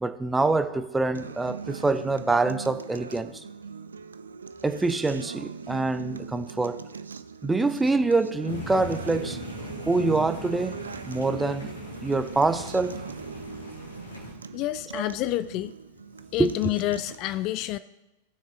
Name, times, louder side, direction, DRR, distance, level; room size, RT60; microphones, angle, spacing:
voice 1, 0.0-3.3 4.6-6.8 7.4-9.4 9.9-11.7 12.0-13.0 14.9-15.0 16.4-16.5, right 3 dB, 10° right, 0.6 m, -25 dB
Acoustic guitar, 1.1-17.2, right 5 dB, 70° right, 0.4 m, -40 dB
sound 1, 8.5-14.3, left 1 dB, 75° left, 1.9 m, -39 dB
voice 2, 14.5-15.7 16.3-17.8, left 15 dB, 40° left, 0.3 m, -28 dB
18.0 x 6.5 x 2.9 m
figure-of-eight pair, 90°, 0 cm